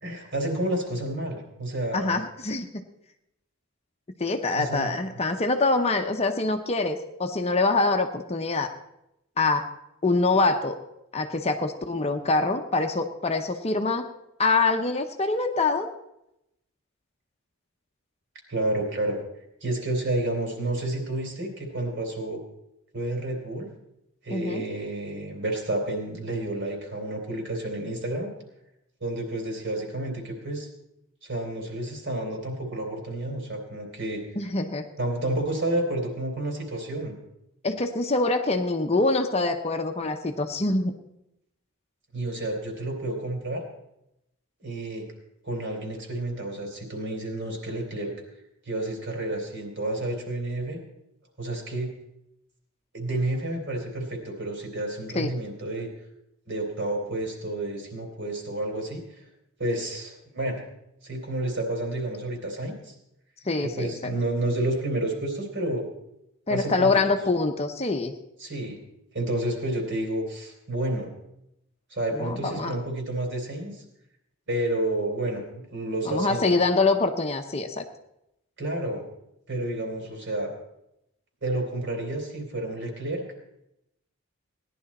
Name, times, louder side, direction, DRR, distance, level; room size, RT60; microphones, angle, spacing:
voice 1, 0.0-2.1 4.5-4.9 18.5-19.2 19.6-22.4 22.9-23.7 24.2-28.3 29.0-30.7 31.2-34.2 35.0-37.2 42.1-43.6 44.6-45.1 45.4-48.1 48.7-50.8 51.4-51.9 52.9-55.9 56.5-59.0 59.6-60.6 61.0-62.9 63.6-65.8 66.5-67.0 68.4-68.8 69.1-71.1 71.9-73.8 74.5-76.5 78.6-79.0 79.5-80.5 81.4-83.2, right 1 dB, 55° right, 2 dB, 3.2 m, -30 dB
voice 2, 1.9-2.8 4.2-8.7 9.4-9.7 10.0-10.8 11.1-14.1 14.4-15.9 24.3-24.6 34.4-34.9 37.6-40.9 55.1-55.3 63.4-64.1 66.5-68.1 72.2-72.8 76.0-77.8, left 3 dB, 30° left, 6 dB, 0.7 m, -25 dB
17.5 x 11.0 x 4.2 m, 0.83 s
head